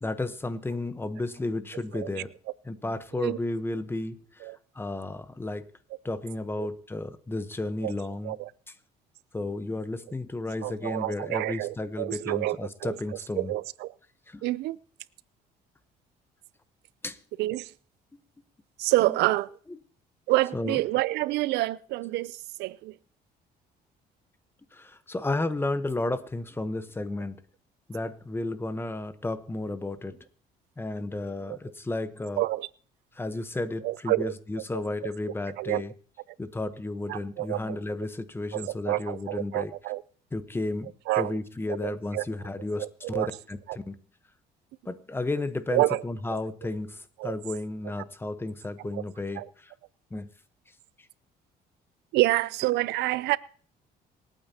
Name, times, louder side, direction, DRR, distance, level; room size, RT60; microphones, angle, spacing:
voice 1, 0.0-2.3 2.6-4.5 4.7-5.7 6.0-8.4 9.3-13.5 14.3-14.4 17.0-17.2 18.1-18.2 20.5-20.8 24.7-27.4 27.9-30.2 30.8-32.4 33.2-35.9 36.4-39.7 40.3-43.6 43.9-44.0 44.8-49.7 50.1-50.3, left 2 dB, 15° left, 1.0 m, -33 dB
voice 2, 10.6-12.9 13.4-13.9 14.4-14.8 17.4-17.7 18.8-19.6 20.3-22.9 31.5-31.6 32.4-32.7 33.8-34.3 34.7-34.8 35.6-35.8 37.1-37.8 38.5-40.0 41.1-41.4 41.8-42.2 42.8-43.3 43.7-43.8 45.7-46.0 47.2-47.3 48.9-49.0 49.4-49.5 52.1-53.4, right 18 dB, 85° right, 0.5 m, -28 dB
26.5 x 9.0 x 2.8 m
cardioid pair, 110°, 17 cm